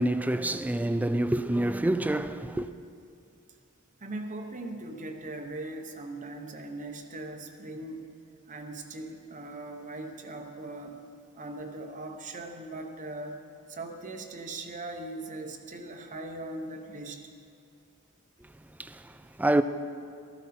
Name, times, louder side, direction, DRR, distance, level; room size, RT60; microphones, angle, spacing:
voice 1, 0.0-2.7 18.8-19.6, right 1 dB, 5° right, 0.3 m, -27 dB
voice 2, 4.0-8.0 8.5-11.0 11.3-13.4 13.7-17.2, right 2 dB, 35° right, 0.9 m, -40 dB
13.5 x 12.5 x 4.3 m
head